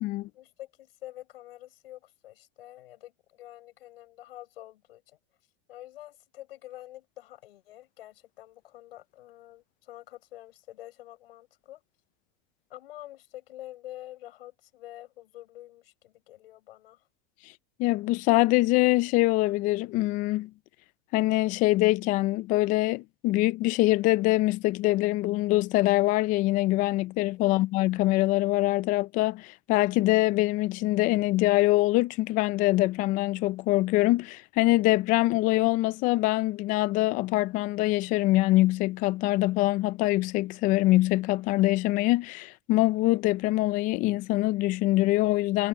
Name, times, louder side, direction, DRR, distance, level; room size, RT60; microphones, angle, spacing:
voice 1, 0.3-5.2 5.7-11.8 12.7-17.1 27.4-27.5, left 15 dB, 85° left, 5.3 m, -47 dB
voice 2, 17.8-20.5 21.1-45.7, left 18 dB, 30° left, 0.5 m, -24 dB
supercardioid pair, 160°, 29 cm